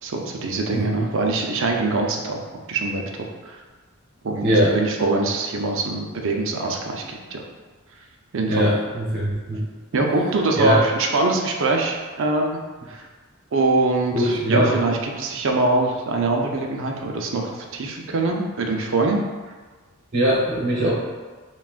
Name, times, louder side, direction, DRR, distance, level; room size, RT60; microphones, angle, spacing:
voice 1, 0.0-2.4 2.7-3.0 3.4-3.6 4.2-7.5 8.3-8.7 9.9-12.6 12.9-13.1 13.5-19.2, right 3 dB, 65° right, 1 dB, 0.5 m, -23 dB
voice 2, 8.5-9.6 10.6-10.8 14.1-14.7 20.1-20.9, equal, 45° right, -6 dB, 0.9 m, -20 dB
5.8 x 2.4 x 2.4 m, 1.4 s
head